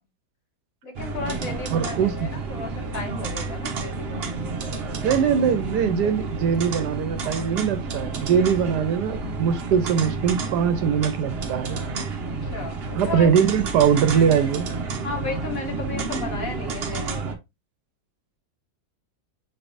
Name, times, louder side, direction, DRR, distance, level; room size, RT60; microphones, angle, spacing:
voice 1, 0.8-4.8 6.0-6.1 12.2-13.3 14.1-14.2 15.0-17.3, left 3 dB, 55° left, 1.3 m, -35 dB
sound 1, 0.9-17.3, right 3 dB, 55° right, 0.7 m, -30 dB
voice 2, 1.7-2.1 5.0-11.8 13.0-14.7, right 7 dB, 75° right, 1.2 m, -22 dB
6.0 x 3.3 x 2.6 m
omnidirectional pair, 1.9 m